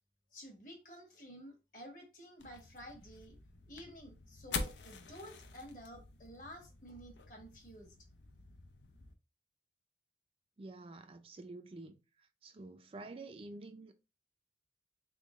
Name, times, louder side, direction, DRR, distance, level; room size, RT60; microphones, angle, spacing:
voice 1, 0.3-3.4 3.7-7.9, equal, 50° left, 1.4 m, -52 dB
sound 1, 2.4-9.1, left 4 dB, 90° left, 0.6 m, -46 dB
voice 2, 10.6-12.0 12.4-14.0, right 2 dB, 30° right, 0.4 m, -49 dB
3.6 x 3.5 x 2.4 m
head